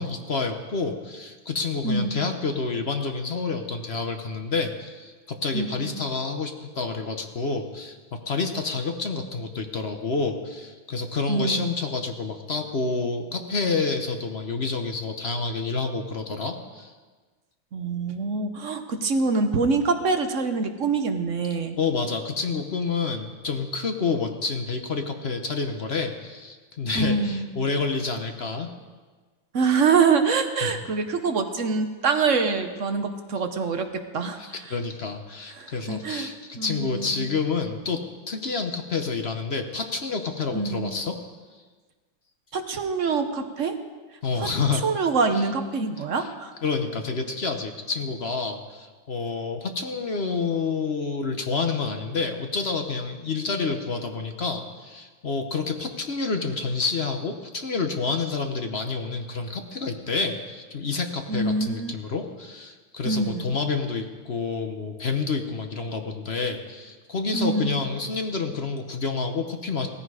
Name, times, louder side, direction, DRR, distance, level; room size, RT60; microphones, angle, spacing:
voice 1, 0.0-16.9 21.8-28.7 30.6-30.8 34.4-41.2 44.2-44.8 45.3-45.5 46.0-46.3 46.6-69.9, left 4 dB, 45° left, 5 dB, 0.9 m, -28 dB
voice 2, 1.8-2.2 5.5-6.0 11.3-11.6 17.7-21.8 27.0-27.5 29.5-34.4 35.6-36.3 36.6-37.3 40.5-40.9 42.5-43.8 44.4-44.5 44.8-46.5 61.3-61.9 63.0-63.5 67.3-67.8, right 4 dB, 50° right, 7 dB, 1.0 m, -25 dB
17.0 x 15.0 x 4.9 m, 1.4 s
omnidirectional pair, 2.3 m